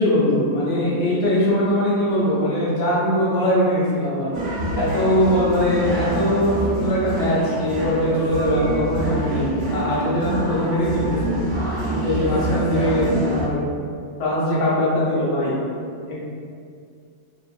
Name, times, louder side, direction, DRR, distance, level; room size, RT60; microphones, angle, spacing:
voice 1, 0.0-4.3 4.8-11.4 11.9-13.6 14.2-15.5 16.1-16.2, equal, 65° left, -8 dB, 1.3 m, -21 dB
sound 1, 4.3-13.5, right 1 dB, 65° right, 0.7 m, -26 dB
3.1 x 2.4 x 2.5 m, 2.3 s
omnidirectional pair, 2.0 m